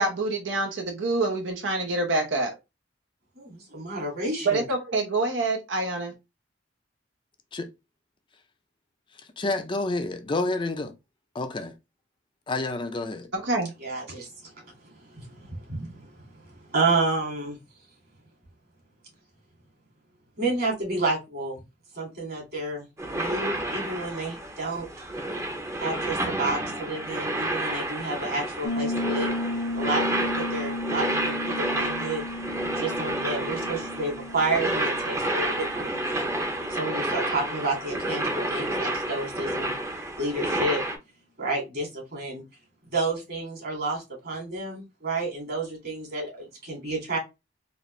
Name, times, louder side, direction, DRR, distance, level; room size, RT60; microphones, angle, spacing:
voice 1, 0.0-2.5 4.4-6.1 13.3-13.7, right 2 dB, 85° right, 0.9 m, -26 dB
voice 2, 3.4-4.6 13.8-14.3 15.1-16.1 16.7-17.6 20.4-21.6 21.9-22.8 23.1-24.9 25.8-29.3 29.7-32.2 32.8-36.3 36.7-39.7 40.2-40.8 41.4-42.4 42.9-47.2, right 2 dB, 55° right, 2.2 m, -30 dB
voice 3, 9.4-10.9 11.3-11.7 12.5-13.3, left 2 dB, 25° left, 0.5 m, -29 dB
sound 1, 23.0-41.0, right 1 dB, 15° right, 0.7 m, -30 dB
Piano, 28.6-37.2, left 2 dB, 65° left, 0.7 m, -34 dB
4.0 x 2.5 x 3.1 m
head